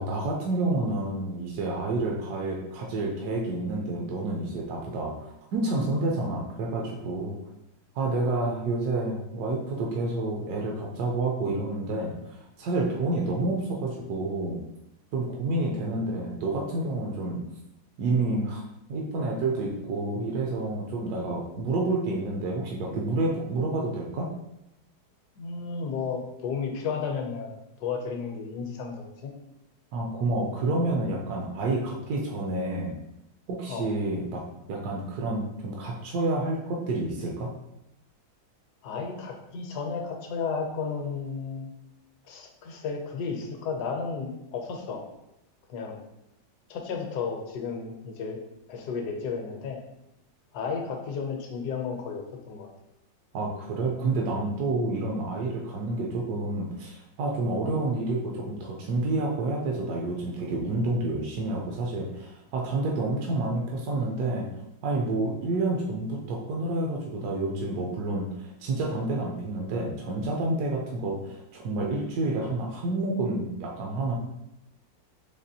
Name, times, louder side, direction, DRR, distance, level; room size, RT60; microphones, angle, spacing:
voice 1, 0.0-7.4 7.9-14.6 15.1-17.4 18.0-18.6 18.9-24.3 29.9-32.9 33.5-34.4 34.7-37.5 53.3-64.5 64.8-74.1, right 2 dB, 70° right, -1 dB, 1.0 m, -29 dB
voice 2, 25.4-27.5 27.8-29.3 33.7-33.9 38.8-41.7 42.2-45.0 45.7-46.0 46.7-48.4 48.7-49.8 50.5-52.7, left 5 dB, 70° left, 2 dB, 1.1 m, -33 dB
4.1 x 2.8 x 2.7 m, 0.87 s
omnidirectional pair, 2.0 m